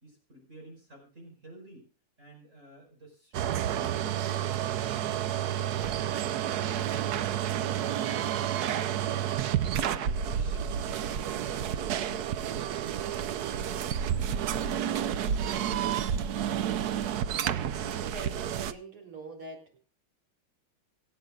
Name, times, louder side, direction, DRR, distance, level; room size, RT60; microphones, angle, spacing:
voice 1, 0.0-1.9 2.2-5.1 9.8-13.1, right 1 dB, 35° right, 0 dB, 5.3 m, -51 dB
sound 1, 3.3-18.7, right 9 dB, 65° right, 1.0 m, -30 dB
voice 2, 17.4-19.9, right 3 dB, 85° right, 2 dB, 4.7 m, -44 dB
25.5 x 8.8 x 2.4 m, 0.36 s
omnidirectional pair, 2.3 m